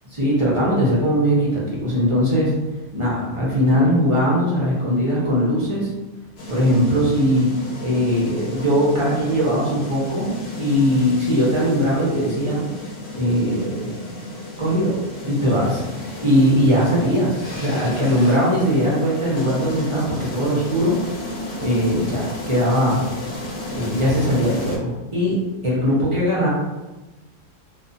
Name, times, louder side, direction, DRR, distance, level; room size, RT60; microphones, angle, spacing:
voice 1, 0.1-2.5 2.9-5.9 6.5-7.5 7.8-10.3 10.6-12.6 13.1-13.9 14.6-21.2 21.6-23.0 23.7-25.4 25.6-26.5, equal, 40° right, -6 dB, 0.4 m, -20 dB
sound 1, 6.4-24.8, left 1 dB, 85° left, 1.2 m, -33 dB
2.4 x 2.4 x 2.6 m, 1.1 s
omnidirectional pair, 1.6 m